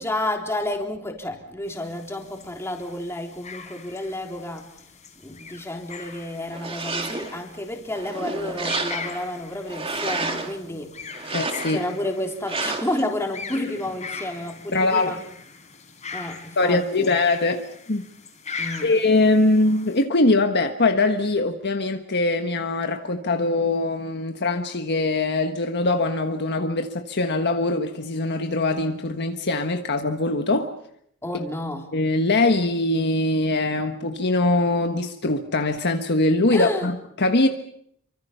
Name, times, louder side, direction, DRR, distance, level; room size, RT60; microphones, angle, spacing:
voice 1, 0.0-4.7 5.2-11.3 11.7-15.2 16.1-17.1 18.6-18.9 31.2-31.9 36.5-36.9, left 1 dB, 10° left, 2 dB, 3.6 m, -30 dB
sound 1, 1.7-20.0, left 5 dB, 30° left, 4.1 m, -40 dB
sound 2, 6.5-7.4 7.9-9.3 9.7-10.6 11.1-11.9 12.5-13.0, right 3 dB, 25° right, 2.4 m, -30 dB
voice 2, 11.3-11.8 14.7-15.1 16.6-18.0 18.8-30.7 31.9-37.5, left 2 dB, 50° left, 6 dB, 1.5 m, -22 dB
29.0 x 24.5 x 5.8 m, 0.70 s
head